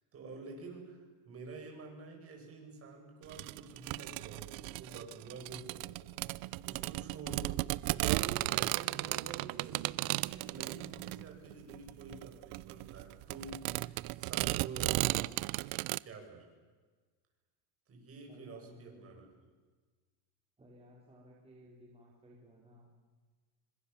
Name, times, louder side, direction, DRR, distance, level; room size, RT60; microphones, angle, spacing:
voice 1, 0.1-6.1 6.4-15.3 16.0-16.5 17.9-19.3, right 4 dB, 30° right, 1 dB, 7.8 m, -49 dB
sound 1, 3.3-16.0, right 21 dB, 50° right, 0.7 m, -35 dB
voice 2, 18.3-19.1 20.6-22.9, equal, 15° right, -3 dB, 4.4 m, -58 dB
26.5 x 26.0 x 7.2 m, 1.4 s
cardioid pair, 150°, 45 cm